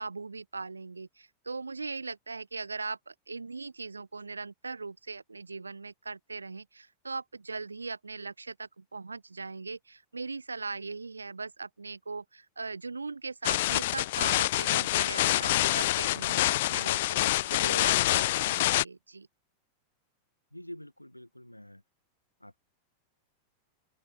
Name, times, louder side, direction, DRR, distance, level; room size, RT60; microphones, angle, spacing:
voice 1, 0.0-19.3, right 4 dB, 80° right, 0.6 m, -40 dB
sound 1, 13.4-18.8, left 16 dB, 55° left, 0.3 m, -26 dB
voice 2, 20.5-21.8 22.4-22.6, left 1 dB, 90° left, 2.0 m, -46 dB
open air
figure-of-eight pair, 90°, 0 cm